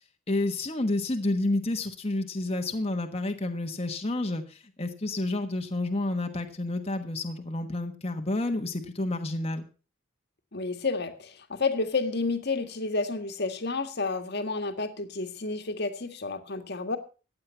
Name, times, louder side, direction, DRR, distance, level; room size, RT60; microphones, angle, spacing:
voice 1, 0.3-9.6, left 2 dB, 30° left, 4 dB, 1.3 m, -30 dB
voice 2, 10.5-17.0, left 3 dB, 55° left, 8 dB, 1.7 m, -30 dB
15.5 x 9.6 x 5.6 m, 0.35 s
head